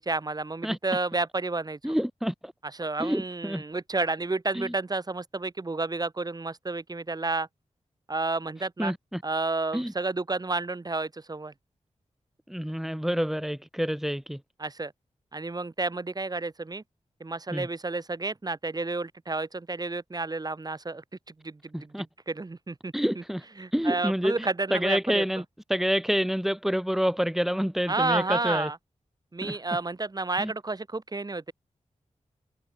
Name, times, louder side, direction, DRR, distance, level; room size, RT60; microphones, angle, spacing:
voice 1, 0.0-2.0 2.8-7.5 8.1-8.9 9.2-11.5 14.6-14.9 15.3-16.8 17.2-21.0 21.4-21.8 22.3-23.2 23.6-25.2 27.9-28.8 29.3-31.5, right 3 dB, 30° right, 7.5 m, -31 dB
voice 2, 1.8-2.5 3.0-3.6 4.5-4.7 8.8-9.2 9.7-9.9 12.5-14.4 17.5-17.7 21.7-22.1 22.9-23.5 23.7-24.4 24.7-25.4 25.7-28.7 29.4-29.8 30.4-30.5, equal, 5° right, 3.5 m, -28 dB
wide cardioid pair, 135°, 12 cm